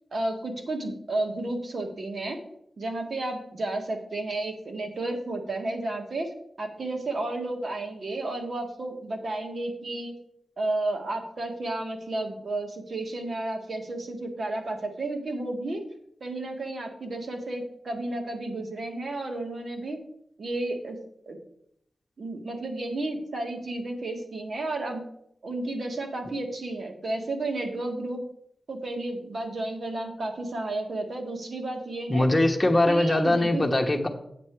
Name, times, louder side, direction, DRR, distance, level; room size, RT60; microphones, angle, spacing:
voice 1, 0.1-2.4 2.8-6.3 6.6-10.1 10.6-15.8 16.2-20.0 20.4-21.0 21.3-21.4 22.2-25.0 25.4-28.2 28.7-32.3 32.9-33.7, right 2 dB, 55° right, 3 dB, 1.8 m, -32 dB
voice 2, 32.1-34.1, left 1 dB, 20° left, 2 dB, 1.3 m, -22 dB
8.7 x 7.3 x 4.7 m, 0.73 s
wide cardioid pair, 105°, 0 cm